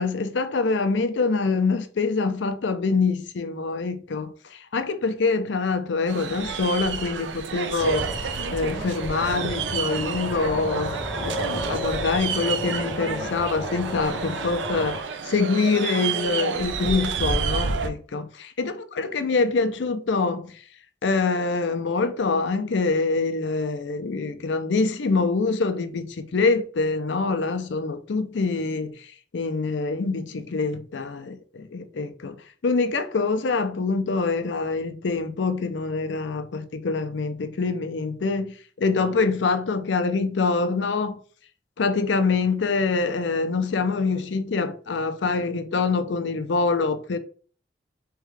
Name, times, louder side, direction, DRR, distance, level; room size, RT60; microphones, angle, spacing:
voice 1, 0.0-8.1 8.5-15.0 15.2-20.5 21.0-28.9 29.3-32.4 32.6-41.2 41.8-47.2, left 4 dB, 85° left, 0.5 m, -25 dB
sound 1, 6.1-17.9, right 5 dB, 90° right, 0.5 m, -30 dB
sound 2, 7.8-15.0, left 1 dB, 10° left, 0.7 m, -34 dB
3.6 x 3.5 x 3.2 m
head